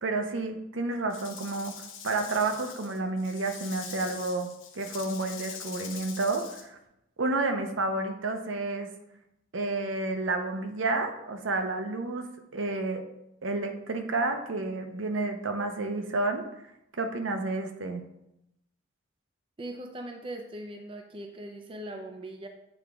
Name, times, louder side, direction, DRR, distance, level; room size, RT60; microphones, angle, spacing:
voice 1, 0.0-1.8 2.0-4.5 4.7-6.8 7.2-8.9 9.5-13.0 13.4-16.4 17.0-18.0, right 2 dB, 75° right, 5 dB, 0.7 m, -30 dB
Rattle / Rattle (instrument), 1.1-6.6, left 7 dB, 80° left, 0.9 m, -43 dB
voice 2, 19.6-22.5, right 1 dB, 25° right, 4 dB, 0.4 m, -40 dB
8.0 x 3.5 x 3.5 m, 0.84 s
head